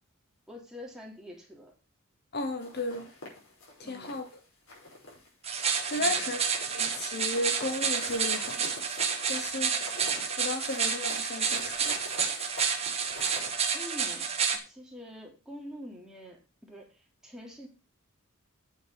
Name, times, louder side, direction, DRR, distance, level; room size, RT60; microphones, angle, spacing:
voice 1, 0.5-1.7 3.8-4.2 6.0-6.3 13.7-17.7, equal, 5° right, 3.4 m, -46 dB
voice 2, 2.3-3.1 3.9-4.2 5.9-6.4 6.7-8.7 9.3-9.8 10.4-11.9, left 2 dB, 50° left, 1.3 m, -34 dB
sound 1, 2.6-4.3 4.7-5.3 5.6-13.5, left 2 dB, 70° left, 5.5 m, -46 dB
sound 2, 5.4-14.6, right 6 dB, 30° right, 1.7 m, -30 dB
8.6 x 7.0 x 5.7 m
head